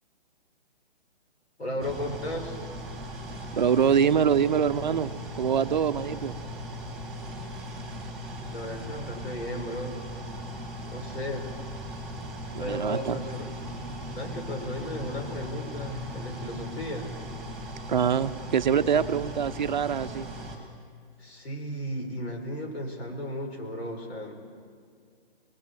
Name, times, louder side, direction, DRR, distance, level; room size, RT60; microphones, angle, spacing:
voice 1, 1.6-2.6 8.5-9.9 10.9-11.5 12.6-13.5 14.2-17.1 18.9-19.0 21.2-24.3, equal, 85° left, 3 dB, 4.9 m, -35 dB
sound 1, 1.8-20.6, equal, ahead, 1.8 m, -38 dB
voice 2, 3.5-5.1 5.4-6.3 12.5-13.2 17.9-20.3, right 7 dB, 45° right, 12 dB, 0.6 m, -24 dB
30.0 x 21.0 x 4.6 m, 2.1 s
hypercardioid pair, 160°, 31 cm